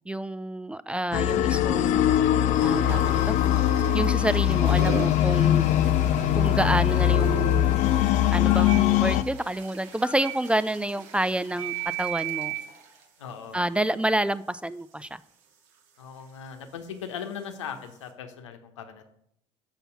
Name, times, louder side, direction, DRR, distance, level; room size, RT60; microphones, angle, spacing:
voice 1, 0.1-2.1 2.6-3.4 3.9-5.6 6.4-7.5 8.3-12.5 13.5-15.2, right 1 dB, 5° right, 16 dB, 0.4 m, -28 dB
sound 1, 1.1-9.2, left 12 dB, 55° left, 0.5 m, -22 dB
sound 2, 1.3-1.6 2.3-18.1, right 6 dB, 75° right, 1.5 m, -44 dB
Telephone, 3.6-4.1 7.1-7.6 8.5-8.8 10.0-10.3 11.6-12.6, right 13 dB, 60° right, 3.5 m, -33 dB
voice 2, 5.9-6.3 13.2-13.6 16.0-19.0, left 7 dB, 85° left, 6 dB, 0.9 m, -39 dB
6.8 x 5.6 x 5.9 m, 0.71 s
hypercardioid pair, 65°, 15 cm